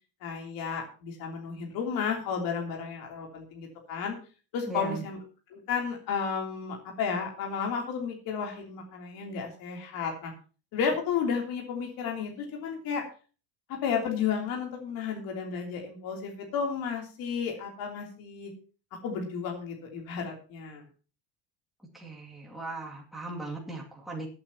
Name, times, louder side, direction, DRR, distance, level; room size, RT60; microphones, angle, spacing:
voice 1, 0.2-4.1 4.5-5.2 5.5-10.3 10.7-13.0 13.7-18.5 19.0-20.8, left 6 dB, 55° left, 0 dB, 3.3 m, -32 dB
voice 2, 4.7-5.0 21.9-24.3, right 3 dB, ahead, -3 dB, 2.4 m, -38 dB
20.5 x 8.7 x 2.9 m, 0.36 s
cardioid pair, 155°, 42 cm